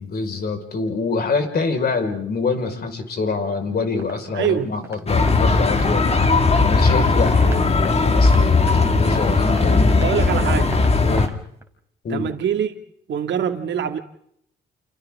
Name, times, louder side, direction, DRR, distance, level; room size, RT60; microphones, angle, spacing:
voice 1, 0.0-6.1 6.6-10.1 11.0-11.3 12.0-12.3, left 4 dB, 50° left, 5.2 m, -25 dB
sound 1, 4.0-4.1 4.4-4.5 4.8-5.0 5.3-5.4 5.7-5.9 6.1-6.7 7.0-7.1 7.4-7.9 8.3-8.4 8.7-8.8 9.1-9.2 9.5-9.6 9.9-10.1 10.3-10.4 10.7-10.9 11.2-11.3 11.6-11.7, right 2 dB, 15° right, 4.4 m, -37 dB
voice 2, 4.3-4.9 7.4-7.6 9.9-10.7 12.1-12.8 13.1-14.0, right 9 dB, 65° right, 2.3 m, -24 dB
sound 2, 5.1-11.3, left 3 dB, 30° left, 2.2 m, -17 dB
29.5 x 28.5 x 3.7 m
cardioid pair, 90°, 20 cm